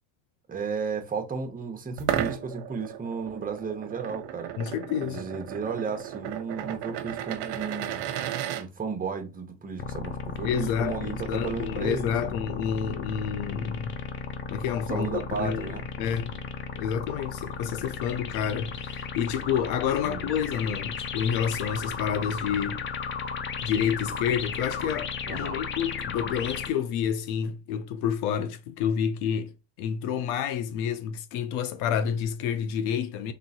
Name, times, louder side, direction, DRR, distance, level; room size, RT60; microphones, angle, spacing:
voice 1, 0.5-4.5 5.0-8.0 8.6-12.4 14.9-15.8 20.0-20.3 25.3-25.6, right 5 dB, 15° right, 0.9 m, -34 dB
sound 1, 1.9-8.6, right 11 dB, 55° right, 0.8 m, -34 dB
voice 2, 4.6-5.3 10.4-14.0 14.5-15.7 16.0-16.4 16.8-22.8 23.6-29.5 29.8-33.3, left 8 dB, 70° left, 0.7 m, -29 dB
sound 2, 9.8-26.7, left 6 dB, 25° left, 0.4 m, -35 dB
3.3 x 3.0 x 4.0 m
supercardioid pair, 120°, 49 cm